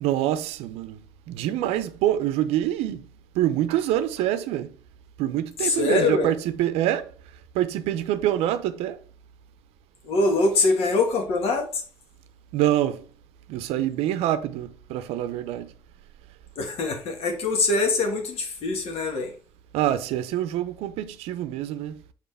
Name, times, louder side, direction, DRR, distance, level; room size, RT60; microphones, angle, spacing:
voice 1, 0.0-1.0 1.3-3.0 3.4-4.7 5.2-7.1 7.5-9.0 12.5-13.0 13.5-15.7 19.7-21.9, right 12 dB, 85° right, 0.6 m, -25 dB
voice 2, 5.6-6.3 10.0-11.7 16.6-19.3, left 3 dB, 75° left, 1.5 m, -23 dB
5.5 x 5.0 x 3.4 m
supercardioid pair, 55°, 10 cm